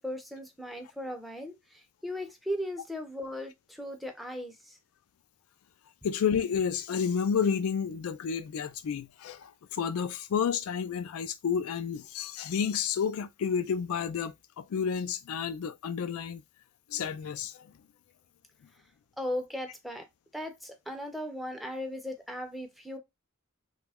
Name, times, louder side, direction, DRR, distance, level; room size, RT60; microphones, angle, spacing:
voice 1, 0.0-4.8 19.2-20.1 20.3-23.0, left 1 dB, ahead, 0.5 m, -37 dB
voice 2, 6.0-16.4 16.9-17.5, left 7 dB, 85° left, 0.4 m, -30 dB
3.0 x 2.3 x 3.4 m
head